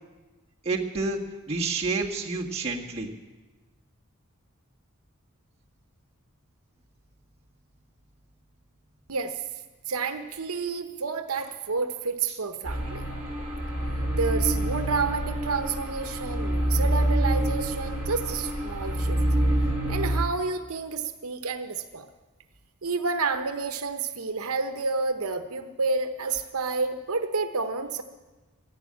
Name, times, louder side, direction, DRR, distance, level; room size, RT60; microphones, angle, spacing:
voice 1, 0.6-1.2 1.5-3.1, right 3 dB, 25° right, -2 dB, 1.7 m, -28 dB
voice 2, 9.1-9.4 9.9-13.0 13.9-19.2 19.9-22.1 22.8-28.0, right 4 dB, 80° right, 7 dB, 0.9 m, -30 dB
sound 1, 12.6-20.2, right 1 dB, 5° right, 5.1 m, -27 dB
13.0 x 11.5 x 8.6 m, 1.2 s
head